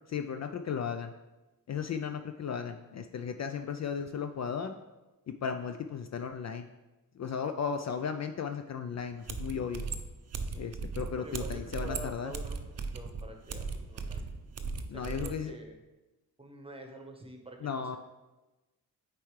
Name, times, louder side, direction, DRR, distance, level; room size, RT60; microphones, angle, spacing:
voice 1, 0.1-1.1 1.7-4.8 5.4-6.7 7.2-9.9 10.6-12.3 14.9-15.5 17.6-18.0, left 6 dB, 45° left, 7 dB, 0.4 m, -35 dB
sound 1, 9.3-15.4, right 4 dB, 45° right, 0.6 m, -37 dB
voice 2, 10.4-10.8 11.2-12.6 12.9-14.2 14.9-15.8 16.4-18.0, right 1 dB, 15° right, 3 dB, 1.1 m, -47 dB
8.3 x 4.5 x 3.2 m, 1.1 s
cardioid pair, 70°, 38 cm